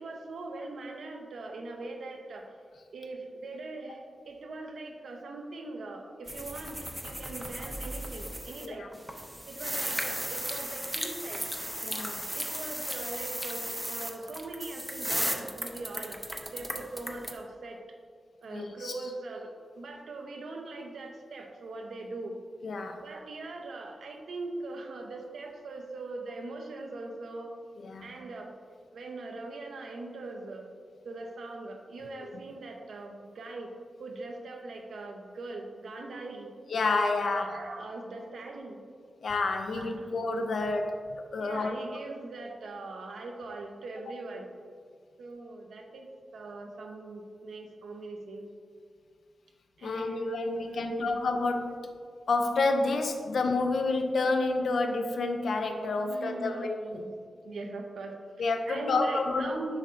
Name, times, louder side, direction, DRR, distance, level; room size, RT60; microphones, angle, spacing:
voice 1, 0.0-2.5 2.9-8.9 9.5-11.5 12.3-17.8 18.4-22.4 23.0-27.5 28.0-28.5 28.9-30.7 31.0-33.7 34.0-36.5 37.2-38.8 39.6-40.2 40.5-40.9 41.4-44.5 45.2-48.4 49.8-51.2 56.0-57.1 57.4-59.8, right 2 dB, 85° right, 2 dB, 0.8 m, -41 dB
sound 1, 6.3-8.7 8.9-17.3, equal, 5° right, 0.5 m, -35 dB
voice 2, 11.8-12.2 18.5-18.9 22.6-23.0 27.8-28.1 32.2-32.3 36.7-37.5 39.2-40.9 41.3-41.8 49.8-51.8 52.3-57.1 58.4-59.5, left 3 dB, 70° left, 5 dB, 0.5 m, -29 dB
7.3 x 5.6 x 2.5 m, 2.1 s
wide cardioid pair, 170°, 0 cm